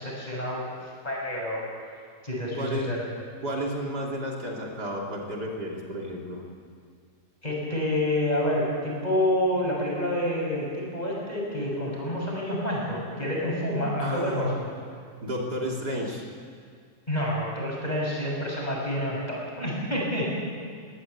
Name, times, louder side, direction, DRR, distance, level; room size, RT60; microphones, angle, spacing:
voice 1, 0.0-1.6 2.2-3.0 7.4-14.5 17.1-20.4, left 1 dB, 25° left, -3 dB, 7.0 m, -28 dB
voice 2, 2.5-2.9 3.4-6.4 14.0-14.5 15.2-16.2, equal, 80° right, -1 dB, 3.6 m, -31 dB
22.5 x 17.5 x 8.4 m, 2.1 s
omnidirectional pair, 1.7 m